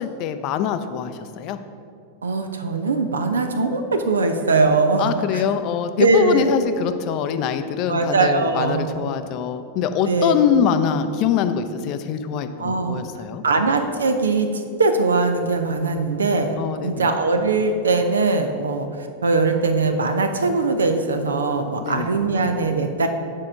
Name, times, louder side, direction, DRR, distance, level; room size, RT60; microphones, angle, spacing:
voice 1, 0.0-1.6 5.0-13.4 16.6-17.1 21.9-22.1, left 8 dB, 40° left, 9 dB, 0.5 m, -24 dB
voice 2, 2.2-5.4 6.0-6.6 7.9-9.1 10.1-10.3 12.6-13.0 13.4-16.6 16.8-23.1, right 3 dB, 70° right, 6 dB, 0.5 m, -21 dB
7.3 x 4.6 x 6.2 m, 2.4 s
figure-of-eight pair, 90°, 0 cm